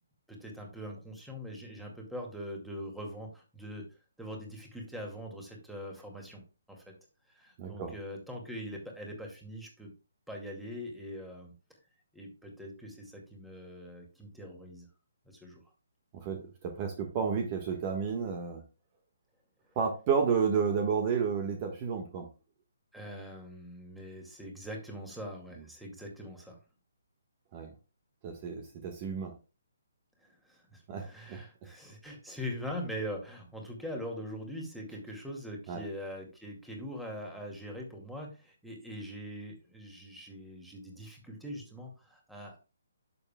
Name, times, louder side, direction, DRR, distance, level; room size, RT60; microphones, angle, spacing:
voice 1, 0.3-3.8 4.2-6.4 6.7-6.9 7.3-9.9 10.3-11.5 12.1-14.9 15.3-15.6 22.9-26.6 30.2-42.6, equal, ahead, 0 dB, 2.2 m, -42 dB
voice 2, 7.6-7.9 16.1-18.6 19.7-22.3 27.5-27.7 28.2-29.3 30.9-31.0 31.3-31.4 35.7-35.8, right 6 dB, 30° right, 4 dB, 1.5 m, -31 dB
10.5 x 7.0 x 2.3 m, 0.30 s
figure-of-eight pair, 140°, 0 cm